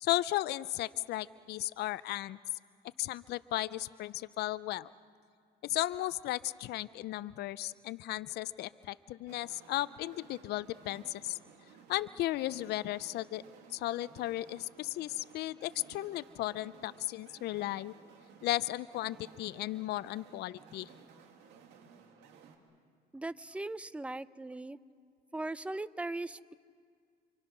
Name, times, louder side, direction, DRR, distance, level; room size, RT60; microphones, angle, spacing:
voice 1, 0.0-2.4 3.0-4.9 5.6-11.4 11.9-13.4 13.7-17.9 18.4-20.9, left 15 dB, 75° left, 17 dB, 0.5 m, -35 dB
sound 1, 9.3-22.6, right 6 dB, 85° right, 2.6 m, -57 dB
voice 2, 23.1-24.8 25.3-26.5, right 2 dB, 5° right, 16 dB, 0.6 m, -39 dB
28.0 x 26.5 x 6.0 m, 2.1 s
cardioid pair, 110°, 17 cm